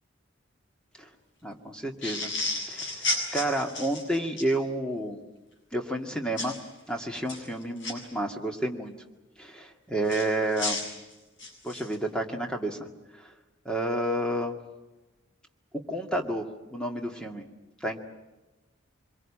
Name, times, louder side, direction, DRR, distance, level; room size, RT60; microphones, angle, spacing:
voice 1, 1.4-2.3 2.7-5.2 5.7-6.6 6.9-8.9 9.4-10.8 11.6-12.9 13.2-13.3 13.7-14.6 15.9-17.4 17.8-18.0, right 1 dB, 5° left, 3 dB, 2.1 m, -30 dB
sound 1, 2.0-4.5 6.4-6.6 7.1-7.9 10.1-11.9, left 2 dB, 60° left, 7.8 m, -32 dB
26.0 x 23.0 x 8.7 m, 1.1 s
head